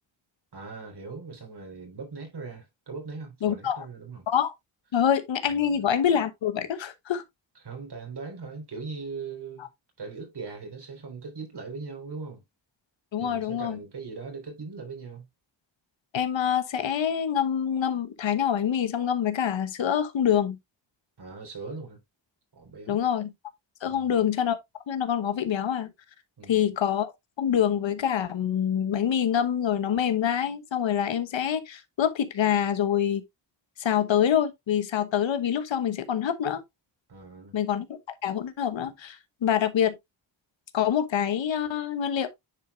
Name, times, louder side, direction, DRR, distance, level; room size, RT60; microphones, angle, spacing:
voice 1, 0.5-4.3 5.5-5.9 7.6-9.7 10.0-12.4 13.2-15.2 21.2-22.0 22.5-23.0 23.9-24.2 26.4-26.7 37.1-37.6, right 4 dB, 55° right, 3.8 m, -40 dB
voice 2, 3.4-3.8 4.3-4.5 4.9-7.2 13.1-13.8 16.1-20.6 22.9-23.3 23.8-24.6 24.9-25.9 26.5-27.1 27.4-33.2 33.8-36.6 37.5-39.9 40.7-42.3, left 9 dB, 70° left, 1.1 m, -26 dB
9.8 x 4.8 x 2.3 m
cardioid pair, 65°, 47 cm